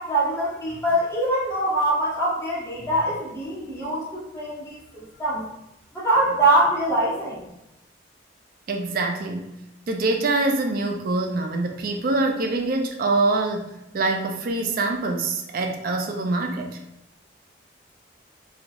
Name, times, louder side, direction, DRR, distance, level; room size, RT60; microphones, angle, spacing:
voice 1, 0.0-5.4 5.9-7.4, right 1 dB, 15° left, -8 dB, 1.0 m, -23 dB
voice 2, 8.7-9.5 9.9-16.7, right 2 dB, 50° right, 3 dB, 0.4 m, -24 dB
2.9 x 2.4 x 2.5 m, 0.89 s
head